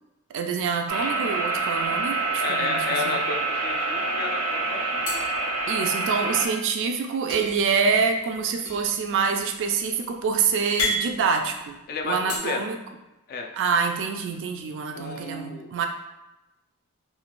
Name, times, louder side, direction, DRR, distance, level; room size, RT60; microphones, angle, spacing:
voice 1, 0.3-3.2 5.7-11.8 12.0-12.8 13.5-15.9, right 5 dB, 60° right, 5 dB, 0.3 m, -26 dB
sound 1, 0.9-6.5, right 3 dB, 90° right, 0.7 m, -27 dB
sound 2, 1.7-2.6 3.0-3.1 3.4-4.1 5.0-6.3 7.3-12.4, left 1 dB, 80° left, 0.8 m, -34 dB
voice 2, 2.4-5.1 11.9-12.6 13.3-13.5 14.9-15.7, left 4 dB, 45° left, 3 dB, 0.3 m, -32 dB
3.1 x 2.2 x 2.4 m, 1.0 s
head